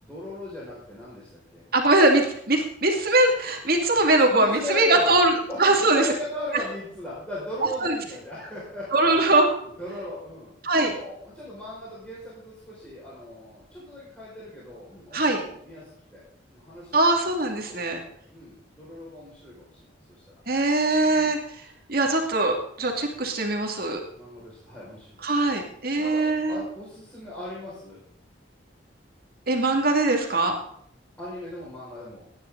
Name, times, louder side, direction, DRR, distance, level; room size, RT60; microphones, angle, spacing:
voice 1, 0.0-1.6 4.2-5.2 5.5-10.5 10.9-16.2 16.5-17.1 17.6-20.2 21.1-21.4 24.1-25.2 26.0-28.0 31.2-32.2, left 1 dB, 5° left, -8 dB, 5.4 m, -38 dB
voice 2, 1.7-5.3 5.6-6.0 7.8-7.9 8.9-9.5 10.6-10.9 15.1-15.4 16.9-18.0 20.5-21.4 21.9-24.0 25.2-26.6 29.5-30.6, right 2 dB, 50° right, 2 dB, 2.4 m, -21 dB
18.0 x 10.0 x 3.9 m, 0.67 s
head